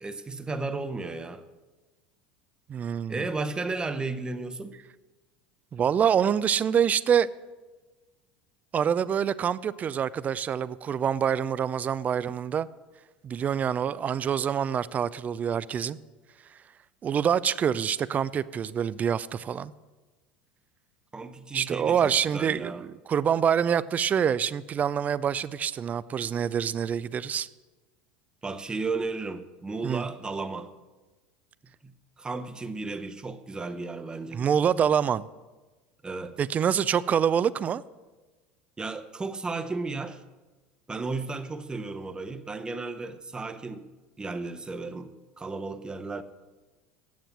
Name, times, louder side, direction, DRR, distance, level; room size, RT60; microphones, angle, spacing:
voice 1, 0.0-1.4 3.1-4.8 21.1-22.8 28.4-30.7 31.8-34.4 36.0-36.4 38.8-40.2 40.9-43.9 44.2-46.2, right 3 dB, 15° right, 10 dB, 0.8 m, -34 dB
voice 2, 2.7-3.2 5.7-7.3 8.7-12.7 13.2-16.0 17.0-19.7 21.5-27.5 29.8-30.0 34.3-35.3 36.4-37.8, right 8 dB, 30° right, 18 dB, 0.4 m, -26 dB
9.4 x 7.4 x 6.0 m, 1.2 s
hypercardioid pair, 90°, 5 cm